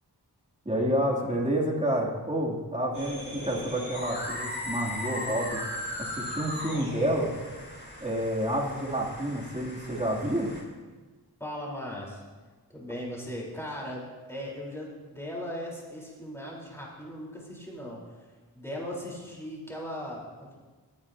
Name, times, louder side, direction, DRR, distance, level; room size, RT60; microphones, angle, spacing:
voice 1, 0.6-5.6 6.0-7.3 8.0-10.5, equal, 15° right, -3 dB, 2.7 m, -29 dB
sound 1, 2.9-10.6, left 1 dB, 25° left, 3.6 m, -38 dB
voice 2, 11.4-12.2 12.7-20.6, equal, 5° left, -4 dB, 3.9 m, -38 dB
20.5 x 9.5 x 2.8 m, 1.3 s
wide cardioid pair, 45°, 41 cm